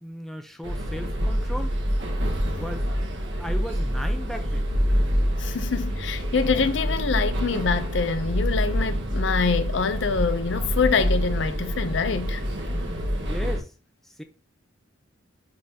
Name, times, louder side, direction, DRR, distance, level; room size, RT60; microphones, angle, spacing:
voice 1, 0.0-1.8 2.5-4.7 12.7-13.7 14.0-14.2, equal, ahead, 0.6 m, -37 dB
sound 1, 0.6-13.6, equal, 65° right, 1.3 m, -26 dB
voice 2, 5.4-12.4, left 5 dB, 65° left, 0.5 m, -25 dB
9.7 x 3.8 x 2.8 m
head